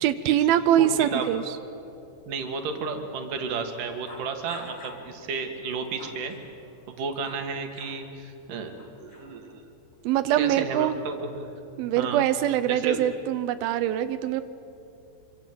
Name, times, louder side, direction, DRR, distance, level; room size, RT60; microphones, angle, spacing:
voice 1, 0.0-1.6 10.0-11.0 11.8-14.4, right 11 dB, 85° right, 11 dB, 2.1 m, -23 dB
voice 2, 0.8-1.3 2.3-6.3 6.9-9.6 10.3-11.5 12.0-12.2 12.7-13.0, right 5 dB, 55° right, 5 dB, 3.1 m, -32 dB
sound 1, 4.1-5.1 5.7-7.5 7.7-8.0 8.8-9.5, left 2 dB, 45° left, 1.0 m, -46 dB
26.5 x 25.5 x 7.6 m, 2.8 s
omnidirectional pair, 5.1 m